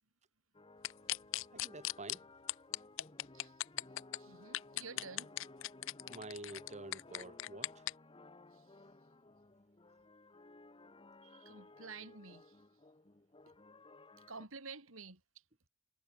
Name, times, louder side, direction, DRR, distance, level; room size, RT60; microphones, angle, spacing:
sound 1, 0.5-14.5, left 2 dB, 25° left, 1.2 m, -58 dB
sound 2, 0.8-2.2 2.5-4.2 4.5-7.9, left 16 dB, 65° left, 0.4 m, -38 dB
voice 1, 1.5-2.3 6.1-7.8, right 2 dB, 35° right, 2.1 m, -49 dB
voice 2, 3.3-5.3 6.0-6.1 8.5-8.9 11.2-12.6 13.5-13.6 14.2-15.4, right 4 dB, 75° right, 3.2 m, -52 dB
head